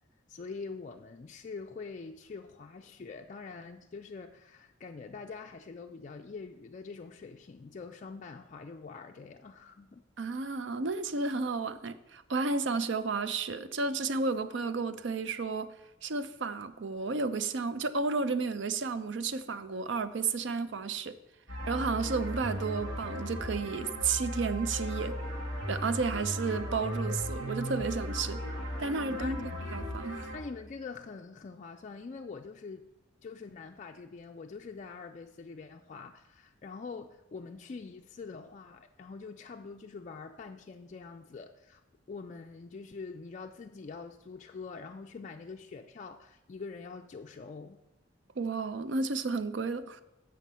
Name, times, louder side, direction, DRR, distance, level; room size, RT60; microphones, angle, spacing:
voice 1, 0.3-10.0 29.1-29.7 30.3-32.9 33.2-41.8 42.1-47.8, left 4 dB, 40° left, 0.4 m, -44 dB
voice 2, 10.2-15.7 16.0-21.2 21.7-25.1 25.7-28.4 28.8-30.3 48.4-50.0, right 4 dB, 65° right, 0.5 m, -32 dB
sound 1, 21.5-30.4, equal, 90° right, 2.1 m, -36 dB
7.5 x 6.4 x 5.4 m
head